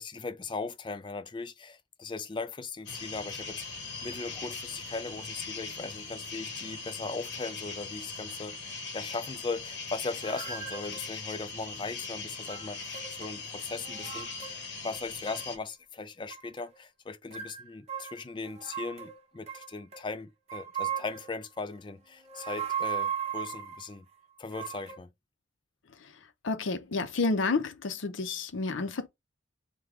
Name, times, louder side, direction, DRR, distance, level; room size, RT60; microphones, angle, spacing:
voice 1, 0.0-14.5 14.8-24.1 24.4-25.1, left 3 dB, 25° left, 0.3 m, -38 dB
sound 1, 2.9-15.6, left 4 dB, 60° left, 0.9 m, -40 dB
sound 2, 10.2-11.2 12.4-13.3 13.6-14.6 14.9-15.6 16.3-16.8 17.3-20.0 20.5-21.3 22.2-23.9 24.5-25.0, right 8 dB, 35° right, 0.8 m, -37 dB
voice 2, 26.4-29.1, left 3 dB, 75° left, 0.6 m, -30 dB
4.7 x 2.2 x 3.5 m
head